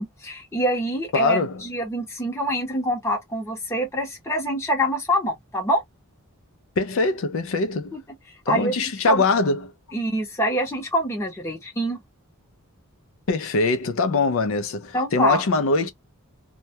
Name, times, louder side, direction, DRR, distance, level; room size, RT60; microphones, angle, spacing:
voice 1, 0.0-5.8 7.9-8.0 8.5-9.2 9.9-12.0 14.9-15.4, equal, 10° left, 0.7 m, -25 dB
voice 2, 1.1-1.6 6.8-7.9 8.5-9.7 13.3-15.9, left 3 dB, 60° left, 0.4 m, -22 dB
2.2 x 2.1 x 2.7 m
head